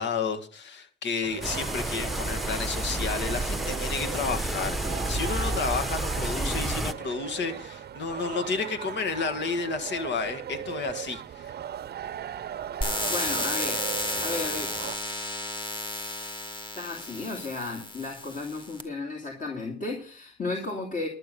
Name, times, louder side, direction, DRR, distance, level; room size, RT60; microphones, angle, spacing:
voice 1, 0.0-11.5, left 5 dB, 65° left, 1.8 m, -31 dB
sound 1, 1.2-15.0, right 10 dB, 55° right, 0.7 m, -38 dB
sound 2, 1.4-6.9, right 1 dB, ahead, 1.0 m, -30 dB
sound 3, 12.8-18.8, left 1 dB, 25° left, 1.9 m, -32 dB
voice 2, 13.0-13.8 14.2-14.7 16.8-21.1, left 3 dB, 40° left, 2.6 m, -34 dB
11.5 x 7.9 x 6.8 m
cardioid pair, 90°, 20 cm